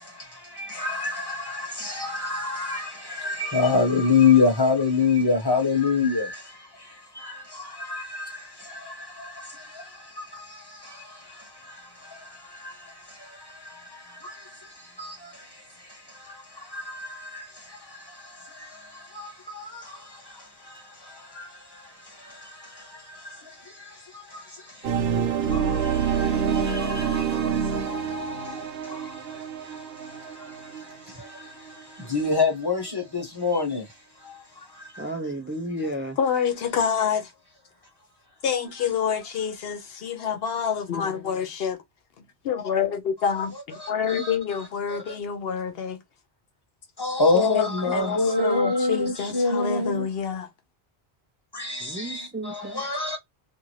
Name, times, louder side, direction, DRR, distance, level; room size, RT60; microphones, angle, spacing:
voice 1, 0.0-35.1 43.5-45.2 47.0-50.1 51.5-53.2, left 4 dB, 25° left, 1.2 m, -28 dB
sound 1, 24.8-31.7, right 7 dB, 75° right, 0.9 m, -27 dB
voice 2, 35.0-36.2 51.8-52.8, right 1 dB, 15° right, 0.4 m, -32 dB
voice 3, 36.2-37.3 38.4-41.8 42.4-43.5 43.9-46.0 47.3-50.5, left 7 dB, 75° left, 0.8 m, -27 dB
2.6 x 2.4 x 3.1 m
omnidirectional pair, 1.0 m